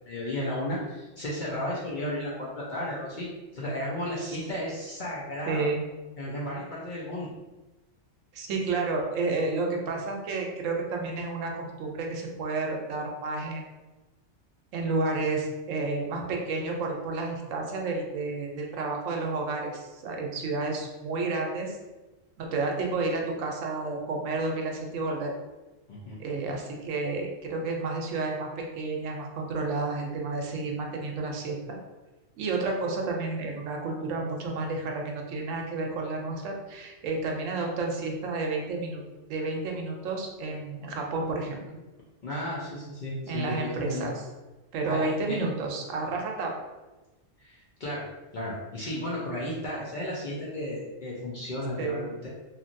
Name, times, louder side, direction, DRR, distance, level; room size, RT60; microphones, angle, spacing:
voice 1, 0.1-3.3 3.5-5.7 6.2-7.3 25.9-26.2 42.2-44.1 44.9-45.4 47.4-48.0 48.3-52.3, left 1 dB, 55° left, -6 dB, 0.6 m, -34 dB
voice 2, 5.5-5.8 8.3-13.7 14.7-21.8 22.4-25.3 26.2-31.8 32.4-39.0 39.3-41.8 43.3-44.2 44.7-46.5 51.8-52.0, right 3 dB, 80° right, 1 dB, 1.0 m, -31 dB
3.0 x 2.5 x 2.6 m, 1.1 s
omnidirectional pair, 1.3 m